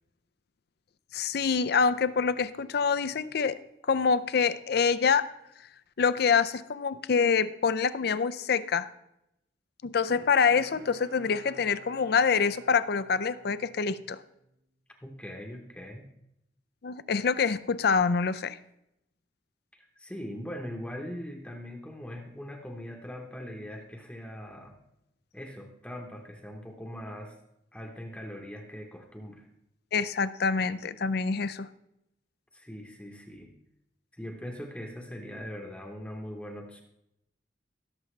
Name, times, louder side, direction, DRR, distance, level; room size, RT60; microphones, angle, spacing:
voice 1, 1.1-3.6 3.9-5.3 6.0-8.9 9.8-14.2 16.8-18.6 29.9-31.7, left 5 dB, 60° left, 14 dB, 0.5 m, -26 dB
Bowed string instrument, 10.1-14.6 15.0-15.1, right 1 dB, 75° right, 0.9 m, -52 dB
voice 2, 15.0-16.1 19.7-24.7 25.3-27.4 27.7-29.5 32.5-33.5 34.1-36.8, equal, 5° left, 2 dB, 0.9 m, -41 dB
16.0 x 6.9 x 3.3 m, 0.82 s
head